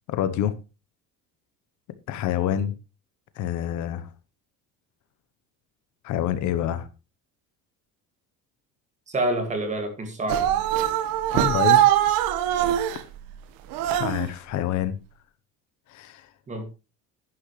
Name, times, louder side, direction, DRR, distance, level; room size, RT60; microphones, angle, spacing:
voice 1, 0.1-0.6 2.1-2.7 3.4-4.1 6.0-6.9 11.3-11.9 13.9-15.0 15.9-16.3, left 11 dB, 55° left, 1.0 m, -27 dB
voice 2, 9.1-10.4 16.5-16.6, right 1 dB, 20° right, 2.2 m, -27 dB
sound 1, 10.3-13.0 13.7-14.3, right 12 dB, 75° right, 1.4 m, -22 dB
11.0 x 10.5 x 3.2 m
cardioid pair, 180°, 35 cm